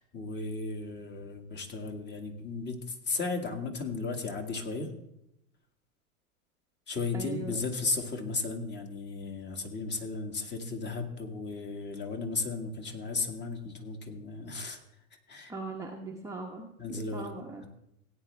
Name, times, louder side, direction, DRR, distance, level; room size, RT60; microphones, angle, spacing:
voice 1, 0.0-4.9 6.9-14.8 15.1-15.5 16.8-17.3 17.6-17.7, left 3 dB, 25° left, 5 dB, 2.0 m, -35 dB
voice 2, 7.1-7.6 15.5-17.6, right 3 dB, 5° right, -1 dB, 1.1 m, -40 dB
17.0 x 9.3 x 3.4 m, 0.81 s
hypercardioid pair, 120°, 44 cm